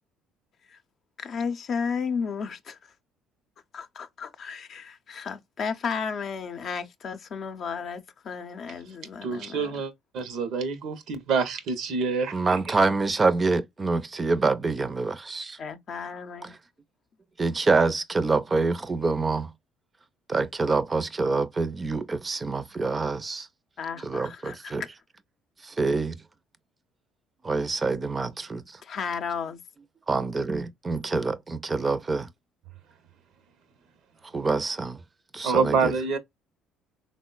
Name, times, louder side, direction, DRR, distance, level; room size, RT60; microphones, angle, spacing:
voice 1, 1.2-2.8 3.7-9.8 15.6-16.5 23.8-24.7 28.8-29.6, left 6 dB, 55° left, 0.5 m, -33 dB
voice 2, 9.2-12.6 35.4-36.2, right 5 dB, 70° right, 0.6 m, -27 dB
voice 3, 12.3-15.6 17.4-19.5 20.3-23.5 24.0-24.8 25.6-26.2 27.4-28.6 30.1-32.3 34.3-35.0 35.3-35.9, right 3 dB, 25° right, 0.5 m, -26 dB
3.7 x 2.1 x 2.2 m
supercardioid pair, 70°, 0 cm